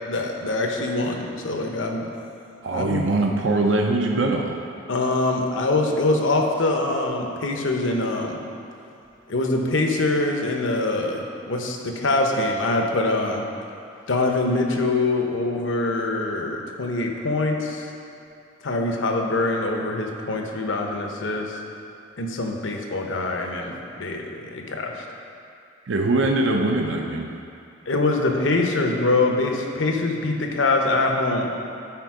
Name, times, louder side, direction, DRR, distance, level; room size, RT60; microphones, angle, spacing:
voice 1, 0.1-2.1 2.7-3.1 4.9-8.4 9.3-13.5 14.1-17.9 18.6-21.6 22.2-25.1 27.9-31.5, left 2 dB, 80° left, 2 dB, 0.8 m, -24 dB
voice 2, 2.6-4.6 25.9-27.3, right 2 dB, 70° right, 2 dB, 0.6 m, -22 dB
10.5 x 4.4 x 4.8 m, 2.6 s
head